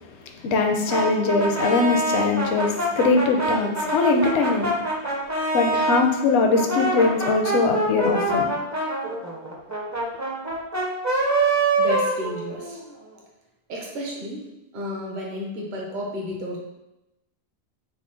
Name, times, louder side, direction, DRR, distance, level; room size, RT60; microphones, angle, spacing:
voice 1, 0.4-4.7 5.5-8.5, left 4 dB, 75° left, 4 dB, 0.8 m, -21 dB
Brass instrument, 0.9-6.1 6.5-12.8, right 2 dB, 20° right, 0.5 m, -25 dB
voice 2, 11.8-12.8 13.7-14.4 14.7-16.6, left 1 dB, 50° right, -2 dB, 0.8 m, -32 dB
4.1 x 2.0 x 3.7 m, 0.95 s
omnidirectional pair, 1.1 m